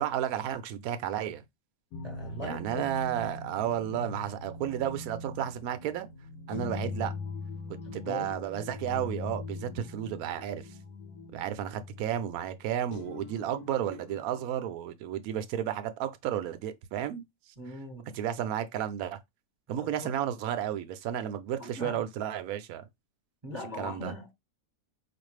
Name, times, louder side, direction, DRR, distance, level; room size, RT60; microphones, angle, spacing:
voice 1, 0.0-1.4 2.4-6.1 6.5-7.2 7.9-10.7 11.3-17.2 17.7-17.8 18.1-19.2 19.7-22.9 23.8-24.1, right 10 dB, 75° right, 1.0 m, -32 dB
sound 1, 1.9-14.5, left 3 dB, 85° left, 1.3 m, -41 dB
voice 2, 2.0-2.9 8.1-8.3 17.6-18.1 19.8-19.9 21.6-22.0 23.4-24.3, left 2 dB, 20° right, 1.1 m, -40 dB
4.6 x 2.5 x 3.1 m
omnidirectional pair, 1.6 m